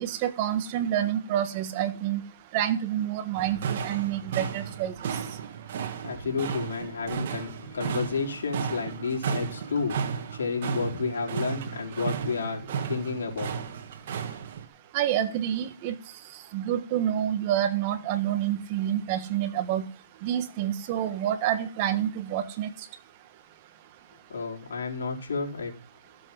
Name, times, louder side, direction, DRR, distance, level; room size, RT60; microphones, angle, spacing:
voice 1, 0.0-2.2 2.5-4.9 14.9-15.9 16.5-19.9 20.2-22.7, right 11 dB, 30° right, 10 dB, 1.5 m, -28 dB
sound 1, 3.4-14.7, right 7 dB, 50° right, 2.0 m, -34 dB
voice 2, 6.0-13.5 24.3-25.7, left 4 dB, 80° left, -1 dB, 4.4 m, -31 dB
15.0 x 7.4 x 5.6 m, 0.38 s
hypercardioid pair, 160°, 0 cm